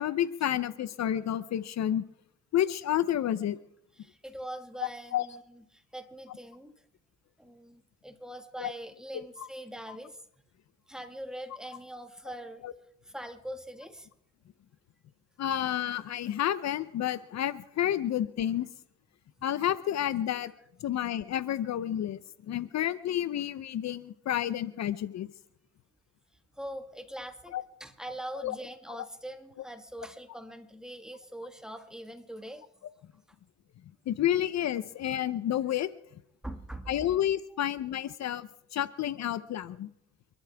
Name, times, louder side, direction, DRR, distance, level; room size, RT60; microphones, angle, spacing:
voice 1, 0.0-2.0 2.5-3.6 4.8-5.2 8.6-8.7 9.4-9.5 12.6-12.7 15.4-18.7 19.4-20.5 20.8-22.2 22.5-25.3 27.5-27.6 28.4-28.5 34.1-35.9 36.9-39.9, left 11 dB, 60° left, 15 dB, 0.7 m, -30 dB
voice 2, 4.0-6.7 7.4-10.2 10.9-12.7 13.0-14.1 26.5-32.6 36.4-37.2, right 1 dB, ahead, 6 dB, 1.8 m, -42 dB
28.0 x 12.5 x 3.5 m, 0.75 s
cardioid pair, 90°, 30 cm